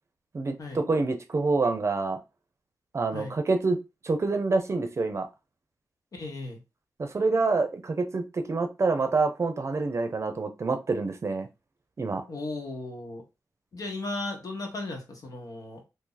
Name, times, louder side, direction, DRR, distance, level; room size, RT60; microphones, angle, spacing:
voice 1, 0.3-2.2 2.9-3.8 4.0-5.3 7.0-11.5 12.0-12.2, right 3 dB, 45° right, 7 dB, 0.6 m, -27 dB
voice 2, 6.1-6.6 12.3-13.2 13.7-15.8, left 2 dB, 60° left, 3 dB, 1.1 m, -36 dB
2.7 x 2.7 x 3.9 m, 0.26 s
wide cardioid pair, 80°, 7 cm